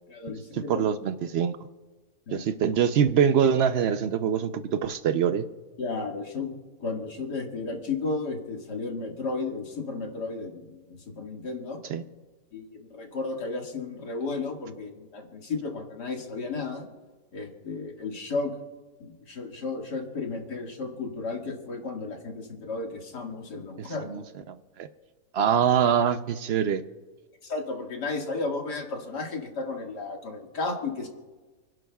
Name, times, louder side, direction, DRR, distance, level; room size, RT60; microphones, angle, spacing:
voice 1, 0.1-0.9 2.3-2.5 5.8-6.5 6.8-11.8 12.5-16.9 17.3-18.6 19.0-24.2 27.4-31.1, left 3 dB, 85° left, 1 dB, 2.5 m, -33 dB
voice 2, 0.7-1.6 2.3-5.5 11.9-12.0 23.8-24.2 24.8-24.9 25.3-26.8, right 8 dB, 80° right, 10 dB, 0.5 m, -24 dB
29.5 x 11.0 x 2.3 m, 1.3 s
omnidirectional pair, 1.7 m